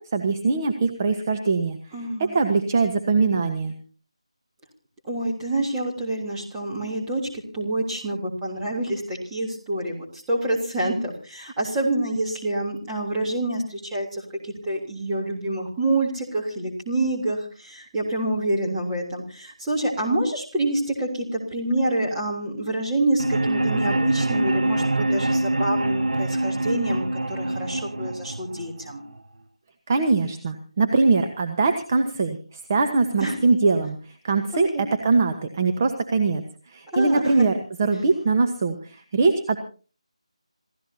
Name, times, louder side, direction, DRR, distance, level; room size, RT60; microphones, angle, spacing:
voice 1, 0.0-3.7 29.9-37.5 37.8-39.6, right 3 dB, 25° right, 6 dB, 1.2 m, -22 dB
voice 2, 1.9-2.4 5.1-7.3 7.5-29.0 33.2-33.4 34.7-34.8 36.9-37.5, right 1 dB, 10° right, -4 dB, 3.3 m, -27 dB
sound 1, 23.2-29.2, right 1 dB, 80° right, 1.1 m, -24 dB
28.0 x 15.5 x 2.8 m, 0.39 s
figure-of-eight pair, 170°, 3 cm